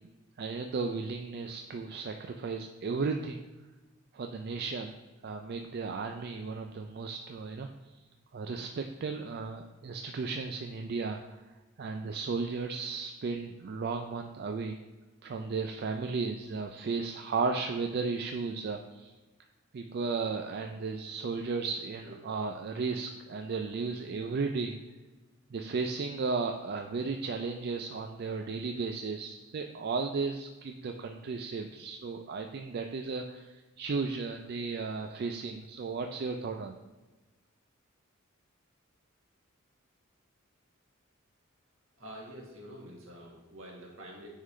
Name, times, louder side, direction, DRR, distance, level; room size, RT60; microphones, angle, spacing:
voice 1, 0.4-3.4 4.1-4.9 5.2-7.7 8.3-11.2 11.8-14.8 15.2-19.1 19.7-24.8 25.5-36.8, right 4 dB, 50° right, 4 dB, 0.3 m, -34 dB
voice 2, 22.0-22.3 42.0-44.3, equal, 75° right, -2 dB, 1.6 m, -47 dB
9.4 x 3.8 x 3.2 m, 1.2 s
head